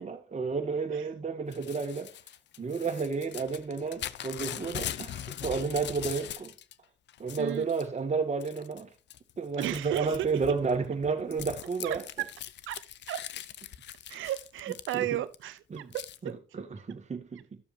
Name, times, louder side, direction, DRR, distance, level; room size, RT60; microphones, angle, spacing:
voice 1, 0.0-2.1 2.6-6.5 7.2-8.9 9.4-12.0 14.9-15.2 15.7-15.9 16.2-17.4, right 4 dB, 35° right, 2.3 m, -31 dB
Crumpling crinkling / Tearing, 1.5-6.7 7.1-7.9 8.4-8.8 9.1-15.3 15.9-16.2, left 11 dB, 65° left, 0.6 m, -41 dB
voice 2, 9.6-10.3 11.8-12.0 12.7-12.8 13.1-13.3 14.1-15.6 15.9-16.3, right 13 dB, 80° right, 0.9 m, -33 dB
12.5 x 7.0 x 2.8 m
cardioid pair, 90°, 20 cm